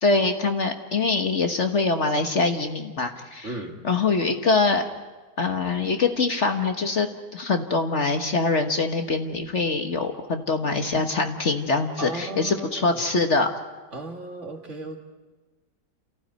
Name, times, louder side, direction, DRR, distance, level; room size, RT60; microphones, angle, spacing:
voice 1, 0.0-3.5 3.8-4.8 5.4-13.5, left 3 dB, 45° left, 5 dB, 1.5 m, -24 dB
voice 2, 3.4-3.9 12.0-13.0 13.9-15.0, right 2 dB, 45° right, 3 dB, 2.4 m, -35 dB
28.0 x 15.5 x 9.2 m, 1.3 s
omnidirectional pair, 1.8 m